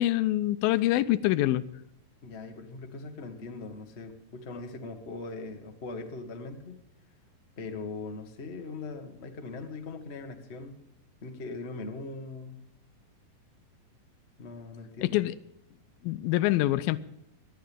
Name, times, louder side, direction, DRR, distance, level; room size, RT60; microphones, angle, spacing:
voice 1, 0.0-1.6 15.0-15.3 16.0-17.0, left 15 dB, 85° left, 15 dB, 2.4 m, -25 dB
voice 2, 2.2-6.8 7.6-10.8 11.2-12.6 14.4-15.2, left 3 dB, 40° left, 4 dB, 0.9 m, -40 dB
20.5 x 12.5 x 3.6 m, 0.82 s
omnidirectional pair, 4.2 m